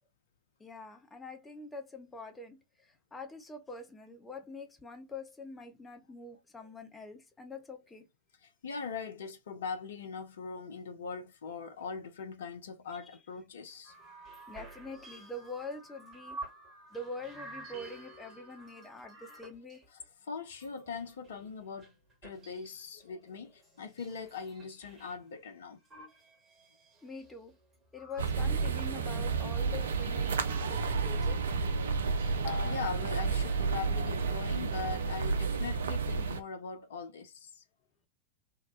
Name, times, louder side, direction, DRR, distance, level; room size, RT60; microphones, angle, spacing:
voice 1, 0.6-8.1 14.3-16.4 16.9-19.9 27.0-27.6 27.9-31.4, left 2 dB, 15° left, 0.7 m, -45 dB
voice 2, 8.4-13.9 19.9-21.9 22.2-25.8 32.5-37.6, left 5 dB, 60° left, 0.5 m, -41 dB
Alarm, 13.8-19.4, right 1 dB, 30° left, 1.1 m, -57 dB
sound 1, 13.9-16.7 16.9-20.0 20.5-25.2 25.8-28.9 29.6-31.2 31.5-33.0 33.2-33.6, equal, 25° right, 1.2 m, -49 dB
sound 2, 28.2-36.4, right 4 dB, 65° right, 0.4 m, -31 dB
2.8 x 2.1 x 2.4 m
figure-of-eight pair, 90°, 0 cm